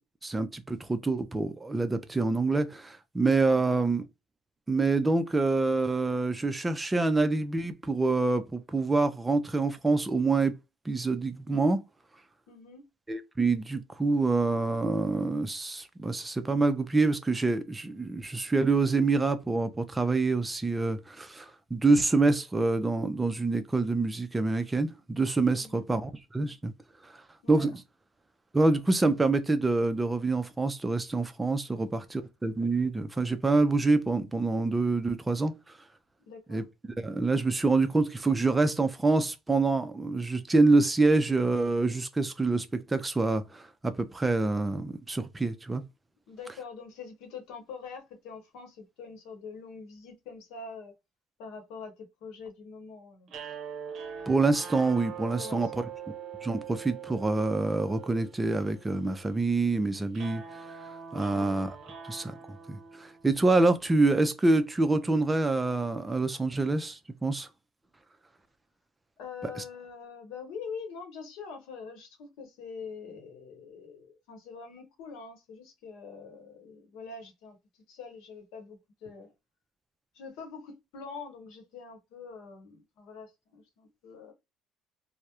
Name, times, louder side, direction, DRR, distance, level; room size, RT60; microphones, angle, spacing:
voice 1, 0.2-4.0 4.7-10.5 10.9-11.8 13.1-26.7 27.0-27.2 27.5-27.8 28.5-35.5 36.5-36.6 37.0-45.8 54.3-55.8 56.4-60.4 61.1-61.8 62.1-62.3 62.7-67.5 69.6-69.7, right 3 dB, 15° right, 0.4 m, -26 dB
voice 2, 12.5-12.9 25.6-25.8 27.4-27.7 36.3-36.6 46.3-50.9 51.4-53.3 55.4-55.9 61.2-61.5 69.2-79.3 80.1-84.3, left 5 dB, 80° left, 0.9 m, -44 dB
sound 1, 53.3-63.5, right 7 dB, 55° right, 0.6 m, -43 dB
2.2 x 2.0 x 2.8 m
cardioid pair, 110°, 0 cm